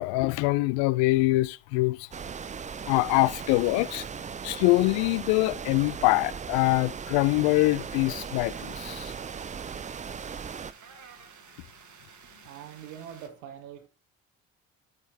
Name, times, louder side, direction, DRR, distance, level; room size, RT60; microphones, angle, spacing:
voice 1, 0.0-2.1 2.9-4.0 4.4-9.1, left 21 dB, 70° left, 0.6 m, -24 dB
sound 1, 2.1-10.7, right 6 dB, 20° right, 0.4 m, -38 dB
sound 2, 7.4-13.3, right 6 dB, 40° right, 1.3 m, -52 dB
voice 2, 12.2-13.9, right 9 dB, 80° right, 1.5 m, -44 dB
8.4 x 8.3 x 2.8 m
hypercardioid pair, 45°, 43 cm